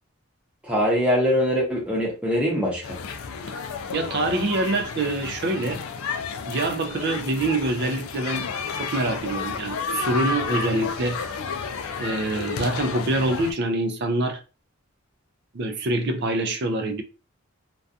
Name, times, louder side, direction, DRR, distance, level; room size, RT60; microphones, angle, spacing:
voice 1, 0.6-3.0, equal, 5° right, 0.7 m, -23 dB
sound 1, 2.8-13.5, left 5 dB, 75° left, 0.4 m, -31 dB
voice 2, 3.9-5.8 6.5-8.5 8.8-11.2 12.0-14.4 15.5-17.0, right 2 dB, 50° right, 0.4 m, -25 dB
2.4 x 2.2 x 2.6 m
head